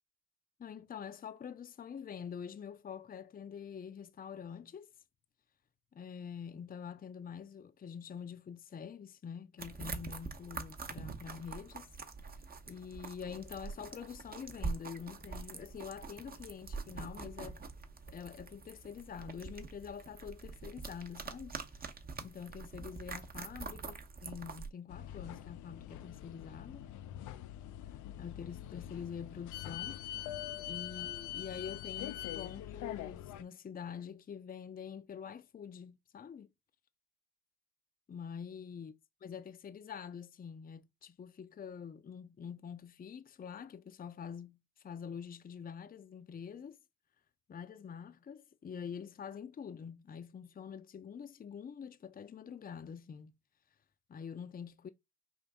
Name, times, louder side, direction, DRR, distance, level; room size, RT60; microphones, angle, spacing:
voice 1, 0.6-4.9 5.9-11.9 12.7-17.6 18.1-21.9 22.2-26.9 28.2-30.0 30.7-36.5 38.1-38.9 39.2-44.6 44.8-46.8 47.5-53.3 54.1-54.9, left 7 dB, 30° left, 0.6 m, -46 dB
sound 1, 9.6-24.7, right 4 dB, 30° right, 0.9 m, -45 dB
sound 2, 24.9-33.4, left 12 dB, 75° left, 0.5 m, -43 dB
5.2 x 2.6 x 3.5 m
cardioid pair, 90°, 30 cm